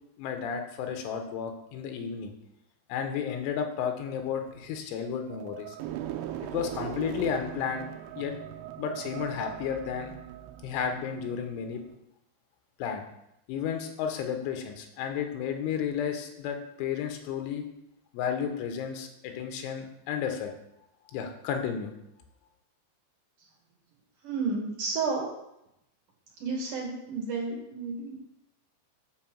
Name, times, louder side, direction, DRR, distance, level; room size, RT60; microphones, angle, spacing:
voice 1, 0.2-2.3 2.9-5.8 6.4-7.9 8.2-8.4 8.8-10.2 10.6-11.8 12.8-13.0 13.5-17.7 18.1-20.5 21.1-21.9, left 7 dB, 90° left, 5 dB, 3.5 m, -32 dB
sound 1, 4.2-11.9, right 11 dB, 85° right, 2.6 m, -40 dB
voice 2, 24.2-25.3 26.4-28.2, right 4 dB, 60° right, -2 dB, 2.5 m, -31 dB
7.4 x 5.5 x 7.4 m, 0.84 s
omnidirectional pair, 5.4 m